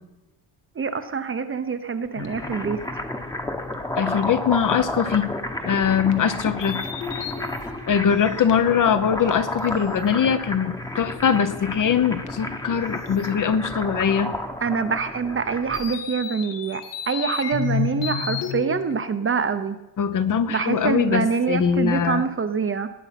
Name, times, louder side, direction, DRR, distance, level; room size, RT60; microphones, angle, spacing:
voice 1, 0.8-2.8 14.6-19.8 20.5-22.9, right 5 dB, 30° right, 10 dB, 0.8 m, -25 dB
sound 1, 2.0-15.9, left 1 dB, 10° left, 1.1 m, -31 dB
sound 2, 2.1-3.2 3.7-3.8 4.2-4.3 6.1-6.2 6.6-8.8 9.3-10.1 12.3-12.4 13.0-13.3 15.7-19.0, left 7 dB, 70° left, 1.6 m, -31 dB
voice 2, 4.0-5.3 5.6-6.9 7.9-14.4 20.0-22.2, left 7 dB, 45° left, 11 dB, 0.9 m, -22 dB
18.5 x 9.6 x 5.9 m, 1.0 s
cardioid pair, 150°, 46 cm